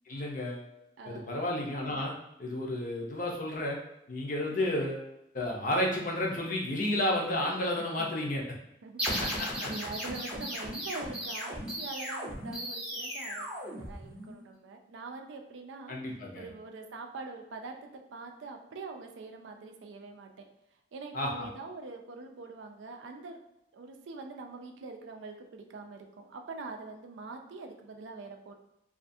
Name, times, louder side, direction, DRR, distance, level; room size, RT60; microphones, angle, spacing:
voice 1, 0.1-0.7 1.1-2.1 2.4-3.8 4.1-5.0 5.3-8.4 9.6-9.7 15.9-16.5 21.1-21.5, left 1 dB, 45° left, -1 dB, 0.5 m, -31 dB
voice 2, 1.0-1.3 4.5-4.6 8.0-8.1 8.8-9.0 9.6-16.0 16.3-20.5 20.9-23.4 23.7-28.5, right 3 dB, 80° right, 4 dB, 0.4 m, -44 dB
sound 1, 9.0-14.4, equal, 5° right, 0.5 m, -36 dB
2.5 x 2.4 x 2.5 m, 0.85 s
head